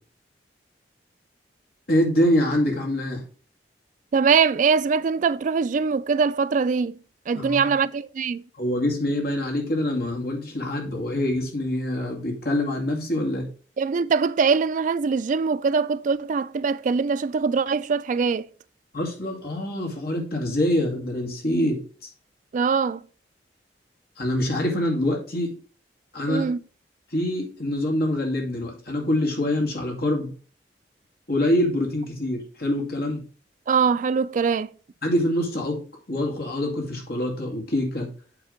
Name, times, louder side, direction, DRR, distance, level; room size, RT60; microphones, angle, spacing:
voice 1, 1.9-3.2 7.3-7.7 8.6-13.5 18.9-21.8 24.2-25.5 26.1-26.5 27.1-30.3 31.3-33.2 35.0-35.8 36.1-38.1, left 1 dB, 60° left, 2.2 m, -25 dB
voice 2, 4.1-7.0 7.3-8.4 13.8-18.5 22.5-23.0 26.3-26.6 33.7-34.7, right 5 dB, 45° right, 0.3 m, -22 dB
8.9 x 3.5 x 5.1 m
head